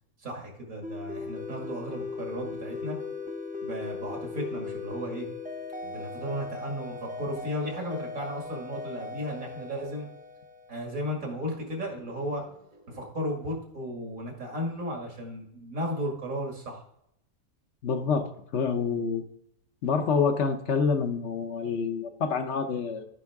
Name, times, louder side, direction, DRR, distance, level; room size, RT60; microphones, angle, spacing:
voice 1, 0.2-3.0 3.6-5.3 5.8-10.1 10.7-16.8, equal, 80° right, 0 dB, 2.6 m, -35 dB
sound 1, 0.8-11.2, left 4 dB, 10° right, 0.5 m, -38 dB
voice 2, 17.8-19.2 19.8-23.1, left 5 dB, 60° left, 7 dB, 1.0 m, -27 dB
14.0 x 5.5 x 3.6 m, 0.74 s
omnidirectional pair, 1.4 m